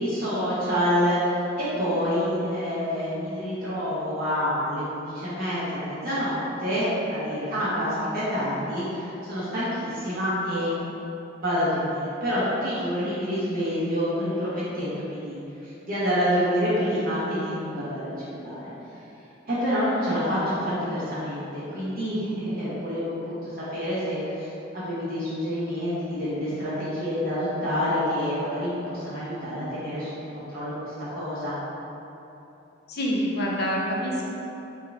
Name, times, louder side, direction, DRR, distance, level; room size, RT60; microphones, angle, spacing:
voice 1, 0.0-10.7 11.4-18.7 19.5-24.5 24.7-30.1 30.3-31.5, equal, 50° right, -11 dB, 1.1 m, -27 dB
voice 2, 32.9-34.3, equal, 55° left, -3 dB, 0.7 m, -26 dB
5.6 x 2.5 x 3.4 m, 2.9 s
head